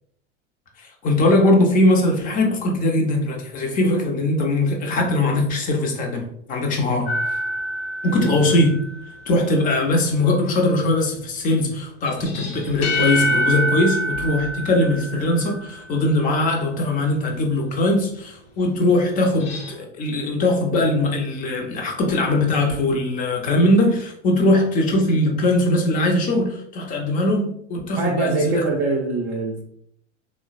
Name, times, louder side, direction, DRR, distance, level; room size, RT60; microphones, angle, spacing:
voice 1, 0.8-7.2 8.0-8.8 9.3-28.6, left 1 dB, 25° left, 1 dB, 0.6 m, -20 dB
sound 1, 7.1-9.0 12.1-15.7 19.2-19.7, equal, 55° left, 0.8 m, -26 dB
voice 2, 28.0-29.6, right 3 dB, 30° right, -1 dB, 0.5 m, -24 dB
3.6 x 2.1 x 2.4 m, 0.69 s
figure-of-eight pair, 80°, 36 cm